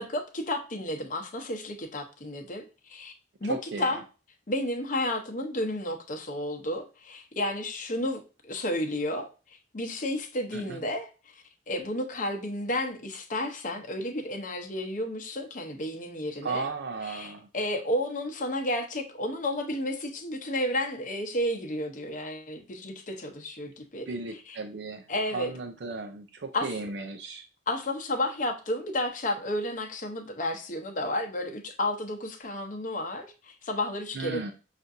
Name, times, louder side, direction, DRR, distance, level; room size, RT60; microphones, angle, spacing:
voice 1, 0.0-3.1 3.4-4.0 4.5-16.6 17.1-24.6 25.1-25.5 26.5-26.7 27.7-34.4, left 1 dB, 45° left, 3 dB, 0.8 m, -32 dB
voice 2, 3.4-4.0 10.5-10.8 16.4-17.5 24.1-25.1 25.3-27.4 34.1-34.5, right 4 dB, 65° right, 4 dB, 0.5 m, -35 dB
5.8 x 2.5 x 2.6 m, 0.32 s
head